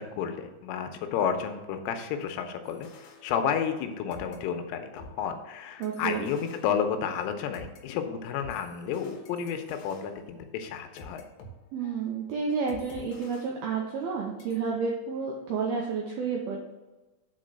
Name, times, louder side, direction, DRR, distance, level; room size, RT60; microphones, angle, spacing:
voice 1, 0.0-11.3, left 7 dB, 85° left, 6 dB, 3.4 m, -31 dB
sound 1, 2.6-3.8 4.1-7.8 8.4-11.5 11.8-12.1 12.7-14.1 14.4-14.6, left 3 dB, 70° left, 2.3 m, -50 dB
voice 2, 5.8-6.3 11.7-16.6, right 5 dB, 85° right, -1 dB, 2.2 m, -30 dB
7.7 x 4.7 x 6.3 m, 1.1 s
omnidirectional pair, 5.6 m